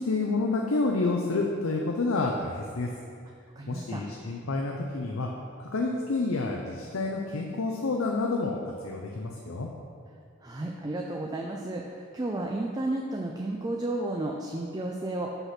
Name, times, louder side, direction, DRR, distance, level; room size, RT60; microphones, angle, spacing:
voice 1, 0.0-2.9 3.7-5.3 5.6-9.7, left 3 dB, 80° left, 0 dB, 0.6 m, -29 dB
voice 2, 3.6-4.0 10.4-15.3, right 2 dB, 20° right, 0 dB, 0.4 m, -32 dB
5.9 x 5.6 x 5.8 m, 2.3 s
head